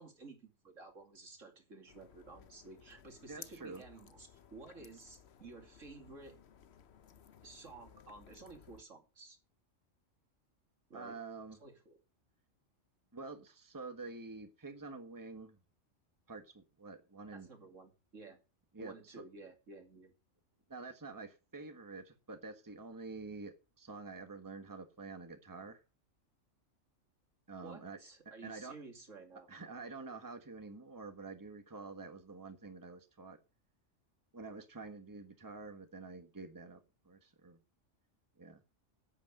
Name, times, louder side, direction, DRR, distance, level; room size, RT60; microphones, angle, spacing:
voice 1, 0.0-6.4 7.4-9.4 10.9-11.2 11.6-12.0 17.3-18.4 18.8-20.1 27.6-29.5, right 3 dB, 80° right, 3.1 m, -53 dB
sound 1, 1.9-8.8, left 8 dB, 60° left, 1.1 m, -58 dB
voice 2, 3.3-3.8 10.9-11.6 13.1-15.6 16.3-17.5 18.7-19.1 20.7-25.8 27.5-28.0 28.4-28.8 29.5-33.4 34.3-37.6 38.4-38.6, right 3 dB, 15° right, 1.4 m, -48 dB
9.7 x 8.4 x 6.4 m
omnidirectional pair, 1.3 m